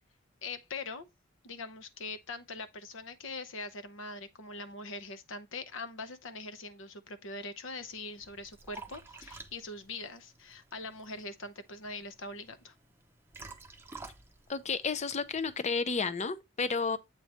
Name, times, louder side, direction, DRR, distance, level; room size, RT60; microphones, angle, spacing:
voice 1, 0.4-1.1 1.4-12.7, left 3 dB, 65° left, 0.8 m, -42 dB
Liquid, 7.8-15.6, right 3 dB, 10° right, 0.7 m, -51 dB
voice 2, 14.5-17.0, left 4 dB, 35° left, 0.6 m, -31 dB
8.1 x 3.1 x 4.3 m
head